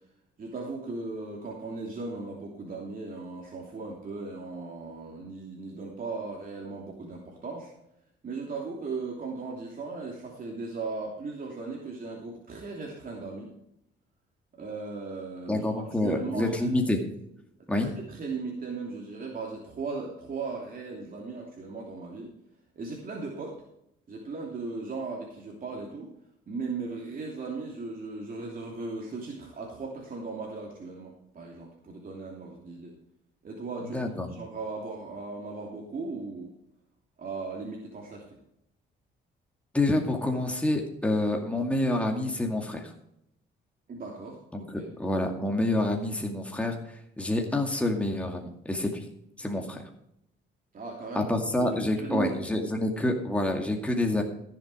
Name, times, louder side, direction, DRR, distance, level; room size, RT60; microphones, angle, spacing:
voice 1, 0.4-7.7 8.2-13.5 14.6-16.8 17.8-22.3 22.7-23.6 24.1-26.1 26.5-32.9 33.4-34.0 34.3-36.5 37.2-38.4 43.9-44.9 50.7-51.3 51.6-51.7 52.0-52.3, right 4 dB, 45° right, -1 dB, 2.9 m, -37 dB
voice 2, 15.5-17.0 17.7-17.9 33.8-34.3 39.7-42.9 44.5-49.0 49.4-49.8 51.1-54.2, left 1 dB, 5° left, 2 dB, 2.2 m, -28 dB
15.0 x 7.4 x 5.0 m, 0.78 s
cardioid pair, 90°, 20 cm